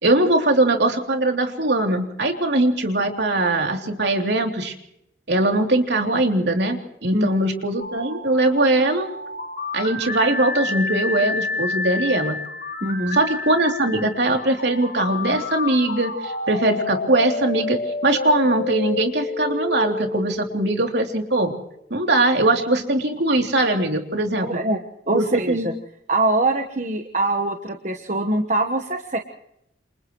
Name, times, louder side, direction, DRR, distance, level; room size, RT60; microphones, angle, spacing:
voice 1, 0.0-4.7 5.3-9.1 9.7-12.4 13.1-21.5 21.9-24.6 25.1-25.7, right 2 dB, 65° right, 3 dB, 3.2 m, -21 dB
sound 1, 7.8-21.6, left 3 dB, 55° left, 3.1 m, -30 dB
voice 2, 12.8-13.2 24.4-25.7 26.1-29.2, right 2 dB, 40° right, 5 dB, 1.3 m, -23 dB
29.0 x 28.5 x 3.2 m, 0.78 s
head